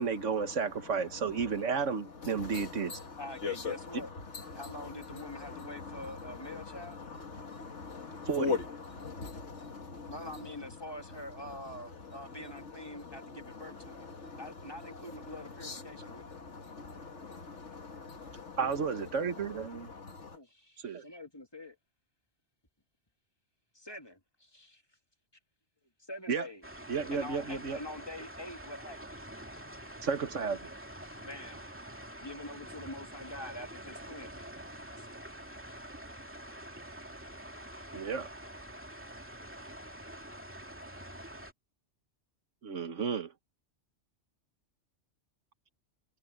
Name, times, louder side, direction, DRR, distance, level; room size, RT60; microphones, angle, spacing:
voice 1, 0.0-3.0 8.3-8.6 18.6-19.9 20.8-21.0 26.3-26.5 26.9-27.8 30.0-30.6 37.9-38.3 42.6-43.3, right 5 dB, 90° right, 1.7 m, -32 dB
voice 2, 2.2-3.9 4.3-10.5 11.7-12.1 12.4-18.6 19.3-20.4, left 4 dB, 70° left, 2.1 m, -41 dB
voice 3, 3.1-4.1 4.5-7.0 10.1-14.1 14.3-16.3 18.6-19.1 20.3-21.8 23.7-24.8 26.0-26.6 27.1-29.3 31.0-31.7 32.2-34.6 35.0-35.1, left 1 dB, 20° left, 2.6 m, -45 dB
sound 1, 26.6-41.5, right 1 dB, 10° right, 2.5 m, -46 dB
omnidirectional pair, 1.2 m